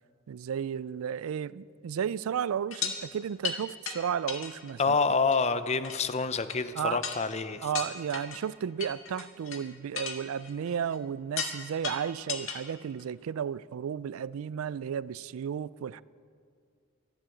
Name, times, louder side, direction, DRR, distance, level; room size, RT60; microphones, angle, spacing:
voice 1, 0.3-5.0 6.8-7.0 7.6-16.0, right 8 dB, 85° right, 0.3 m, -33 dB
sound 1, 2.7-3.0 3.4-3.6 3.9-4.0 4.3-4.9 5.3-5.4 5.8-6.0 6.5-6.6 7.0-7.4 7.7-8.4 8.8-9.6 9.9-11.0 11.4-11.6 11.8-12.6 13.0-13.1, left 7 dB, 70° left, 1.6 m, -35 dB
voice 2, 4.8-7.7, left 4 dB, 30° left, 0.6 m, -27 dB
14.0 x 11.5 x 7.7 m
head